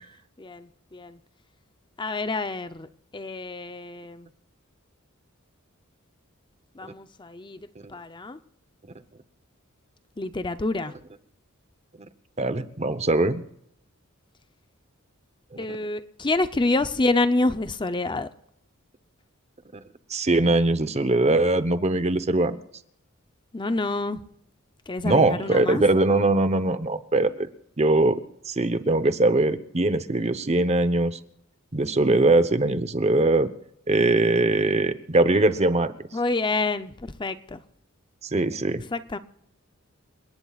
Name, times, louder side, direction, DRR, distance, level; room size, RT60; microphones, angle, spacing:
voice 1, 0.4-1.2 2.0-4.3 6.7-8.4 10.2-10.9 15.6-18.3 23.5-24.2 24.9-25.8 36.1-37.6 38.9-39.2, left 2 dB, 20° left, 0.7 m, -28 dB
voice 2, 12.4-13.4 15.5-15.6 20.1-22.6 25.0-27.5 27.8-28.2 28.5-31.2 31.7-33.5 33.9-35.9 38.3-38.8, right 2 dB, 30° right, 1.0 m, -21 dB
29.0 x 18.5 x 2.4 m
head